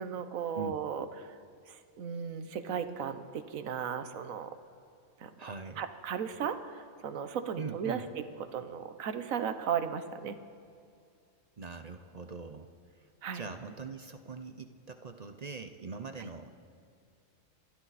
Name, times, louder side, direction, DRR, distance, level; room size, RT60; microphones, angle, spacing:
voice 1, 0.0-1.4 1.7-4.6 5.2-5.3 5.8-8.2 8.5-10.4 13.2-13.5 16.2-16.3, right 7 dB, 85° right, 10 dB, 1.3 m, -36 dB
voice 2, 5.4-5.8 7.6-8.1 11.6-12.7 13.0-13.1 13.3-16.6, right 4 dB, 40° right, 8 dB, 0.6 m, -42 dB
26.5 x 12.0 x 4.1 m, 2.4 s
omnidirectional pair, 1.4 m